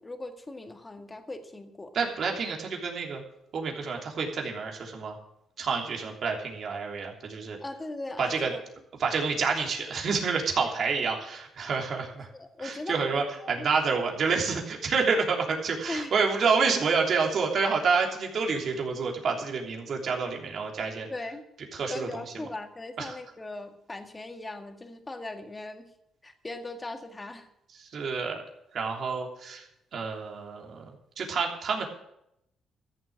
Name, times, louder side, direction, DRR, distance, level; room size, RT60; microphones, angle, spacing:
voice 1, 0.0-1.9 7.6-8.6 10.6-10.8 12.3-13.7 15.9-16.1 21.1-21.4 21.9-25.9 26.2-27.5, left 2 dB, 20° left, 6 dB, 1.8 m, -39 dB
voice 2, 1.9-3.2 3.5-5.2 5.6-7.6 8.2-8.5 9.0-12.3 12.6-21.1 21.7-22.2 23.0-23.1 27.8-28.4 28.7-29.7 29.9-31.9, right 5 dB, 60° right, 1 dB, 3.2 m, -28 dB
14.0 x 7.3 x 8.6 m, 0.79 s
cardioid pair, 90°, 0 cm